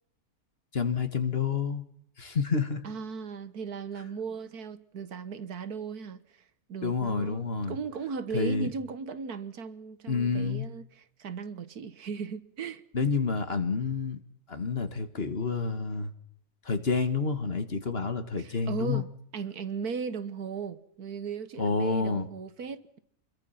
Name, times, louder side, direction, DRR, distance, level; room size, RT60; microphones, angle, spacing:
voice 1, 0.7-1.8 2.2-2.8 6.8-7.8 8.3-8.7 10.1-10.7 12.9-14.2 14.5-16.1 16.7-19.0 21.6-22.3, left 5 dB, 40° left, 1.8 m, -29 dB
voice 2, 2.8-6.2 6.7-12.8 18.4-23.0, right 6 dB, 80° right, 1.8 m, -37 dB
27.5 x 22.5 x 5.8 m
omnidirectional pair, 1.6 m